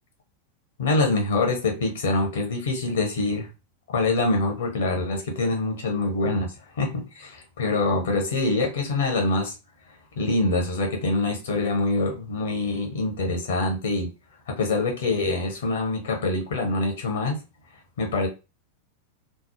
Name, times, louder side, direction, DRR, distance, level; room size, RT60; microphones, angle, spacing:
voice 1, 0.8-3.5 3.9-9.5 10.2-14.1 14.5-17.4 18.0-18.3, left 2 dB, 60° left, 2 dB, 1.0 m, -25 dB
3.3 x 2.0 x 2.9 m, 0.28 s
figure-of-eight pair, 90°, 0 cm